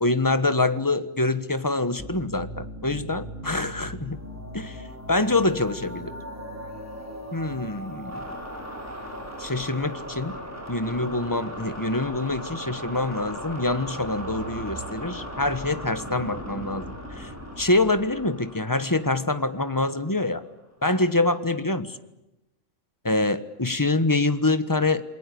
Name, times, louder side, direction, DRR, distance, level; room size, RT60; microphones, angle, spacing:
voice 1, 0.0-4.2 4.5-4.8 5.1-6.1 7.3-8.2 9.4-10.4 10.7-16.9 17.1-17.3 17.6-20.4 20.8-22.0 23.0-25.0, left 2 dB, 15° left, 12 dB, 1.3 m, -25 dB
sound 1, 2.0-20.5, equal, 10° right, 6.1 m, -38 dB
28.5 x 21.5 x 8.6 m, 0.94 s
omnidirectional pair, 1.3 m